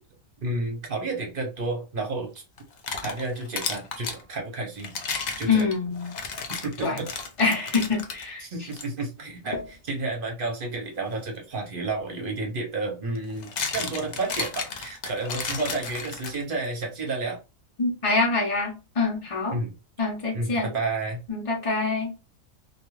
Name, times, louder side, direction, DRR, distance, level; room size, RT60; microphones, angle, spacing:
voice 1, 0.4-2.4 3.0-4.9 5.4-5.6 6.6-7.1 8.4-17.4 19.5-19.7 20.3-20.5 20.7-21.2, right 3 dB, 50° right, 0.8 m, -31 dB
sound 1, 2.6-4.2 4.8-8.2 8.7-8.9 9.5-9.7 11.9-12.0 13.2-16.7, left 5 dB, 90° left, 0.3 m, -33 dB
voice 2, 5.5-6.1 6.8-7.0 7.4-8.7 17.8-19.6 20.0-20.7 21.3-22.1, left 4 dB, 30° left, 0.6 m, -25 dB
2.3 x 2.3 x 3.0 m
omnidirectional pair, 1.4 m